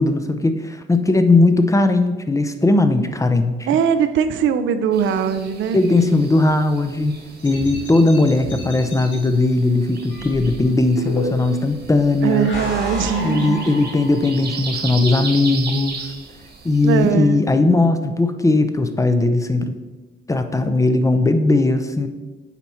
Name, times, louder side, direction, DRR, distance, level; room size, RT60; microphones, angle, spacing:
voice 1, 0.0-3.7 5.7-7.1 7.4-12.5 13.2-16.1 16.6-19.8 20.3-22.1, left 2 dB, 15° left, 9 dB, 0.5 m, -18 dB
voice 2, 3.7-5.8 12.2-13.7 16.8-17.4, right 7 dB, 75° right, 10 dB, 0.5 m, -20 dB
sound 1, 4.9-17.1, right 5 dB, 55° right, 1.3 m, -36 dB
sound 2, 7.4-9.2 10.1-11.6 12.2-14.4, equal, 75° left, 2.2 m, -31 dB
8.1 x 4.3 x 4.2 m, 1.2 s
cardioid pair, 90°, 20 cm